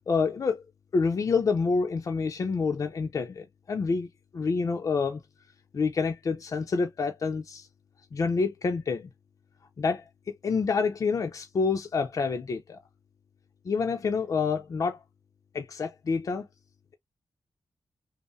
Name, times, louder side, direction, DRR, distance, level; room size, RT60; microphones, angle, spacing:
voice 1, 0.1-0.6 0.9-4.1 4.3-5.2 5.7-7.7 8.1-9.1 9.8-12.8 13.6-15.0 15.5-16.5, left 4 dB, 45° left, 0.5 m, -27 dB
5.4 x 2.0 x 2.7 m
wide cardioid pair, 170°, 8 cm